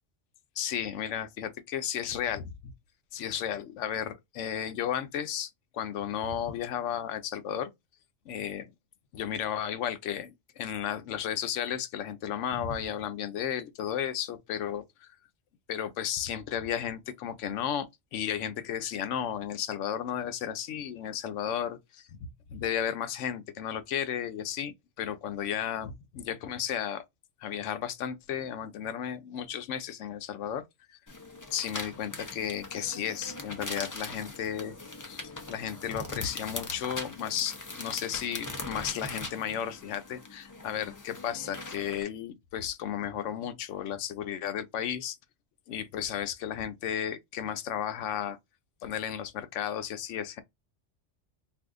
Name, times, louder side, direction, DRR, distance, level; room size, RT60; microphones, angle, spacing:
voice 1, 0.6-2.7 3.1-7.7 8.3-8.7 9.1-15.1 15.7-27.0 27.4-30.6 30.9-31.0 31.5-45.2 45.7-48.4 48.8-50.4, left 9 dB, 85° left, 0.9 m, -34 dB
sound 1, 31.1-42.0, left 2 dB, 25° left, 0.4 m, -41 dB
2.6 x 2.4 x 3.5 m
omnidirectional pair, 1.2 m